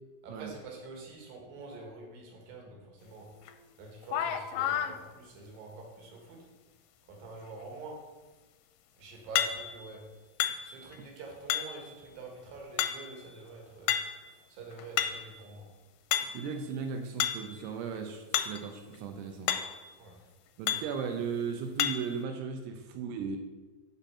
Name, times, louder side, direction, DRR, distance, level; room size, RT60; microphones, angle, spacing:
voice 1, 0.2-3.3 3.8-6.4 7.1-8.0 9.0-10.0 10.6-13.9 14.5-15.7 20.0-20.2, right 3 dB, 65° right, 0 dB, 3.2 m, -46 dB
sound 1, 3.5-3.6 4.0-4.9 9.4-9.9 10.4-10.9 11.5-11.9 12.8-13.3 13.9-14.3 14.7-15.4 16.1-16.5 17.2-17.5 18.3-18.6 18.9-19.0 19.5-19.9 20.7-21.0 21.8-22.2, left 10 dB, 90° left, 2.6 m, -31 dB
voice 2, 16.3-19.5 20.6-23.4, right 6 dB, 90° right, 4 dB, 2.8 m, -36 dB
8.6 x 4.3 x 7.2 m, 1.2 s
omnidirectional pair, 4.6 m